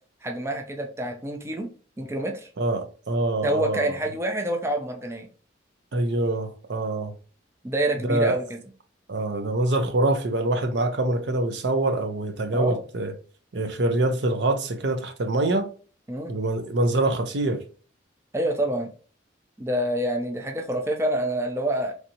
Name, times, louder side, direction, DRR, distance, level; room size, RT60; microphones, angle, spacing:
voice 1, 0.2-1.7 2.0-2.5 3.4-5.3 7.6-8.6 12.5-12.8 16.1-16.3 18.3-18.9 19.6-21.9, right 1 dB, 15° right, 0.4 m, -27 dB
voice 2, 2.6-3.9 5.9-7.1 8.0-8.4 9.1-13.1 13.5-15.7 16.3-17.6, right 2 dB, 65° right, 0.6 m, -25 dB
3.3 x 2.7 x 2.7 m
head